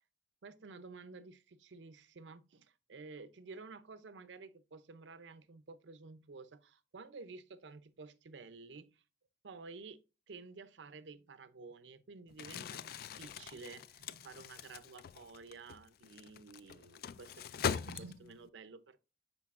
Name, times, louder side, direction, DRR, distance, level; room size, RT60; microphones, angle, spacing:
voice 1, 0.4-9.0 9.4-19.0, right 4 dB, 85° right, 0.6 m, -52 dB
Crumpling crinkling, 12.3-18.5, left 7 dB, 55° left, 0.3 m, -42 dB
9.9 x 4.0 x 2.5 m
head